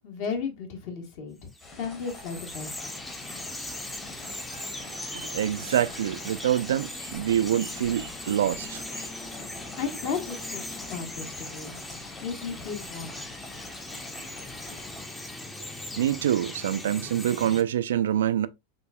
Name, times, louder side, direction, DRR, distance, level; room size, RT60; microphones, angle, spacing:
voice 1, 0.0-1.5 1.7-3.0 9.8-10.6 10.9-11.8 12.2-13.2, left 6 dB, 45° left, 1.2 m, -34 dB
Bird vocalization bird call bird song, 1.5-17.6, left 2 dB, 10° left, 0.7 m, -39 dB
sound 1, 1.6-15.1, left 2 dB, 25° left, 1.3 m, -46 dB
voice 2, 4.5-9.1 16.0-18.5, right 11 dB, 60° right, 0.3 m, -26 dB
6.1 x 2.7 x 2.4 m
figure-of-eight pair, 90°, 0 cm